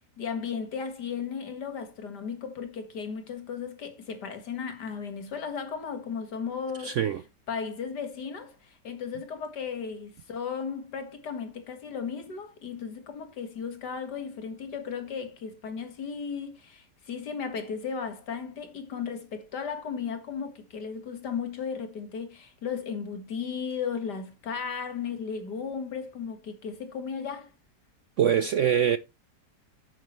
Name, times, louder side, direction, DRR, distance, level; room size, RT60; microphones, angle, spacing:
voice 1, 0.2-7.0 7.5-27.5, left 6 dB, 70° left, 2.3 m, -35 dB
voice 2, 6.8-7.2 28.2-29.0, right 9 dB, 65° right, 0.7 m, -23 dB
9.5 x 9.1 x 3.1 m
omnidirectional pair, 1.9 m